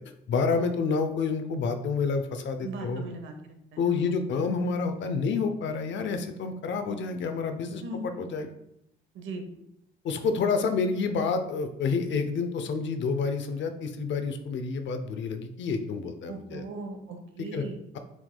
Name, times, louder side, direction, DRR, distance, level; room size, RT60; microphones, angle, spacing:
voice 1, 0.3-3.0 3.8-8.5 10.0-16.6 17.4-17.6, left 5 dB, 65° left, 8 dB, 0.6 m, -29 dB
voice 2, 2.6-3.3 3.7-4.2 7.8-8.0 9.1-9.4 16.3-17.8, right 3 dB, 80° right, 5 dB, 0.8 m, -38 dB
6.0 x 3.5 x 2.2 m, 0.79 s
cardioid pair, 90°, 20 cm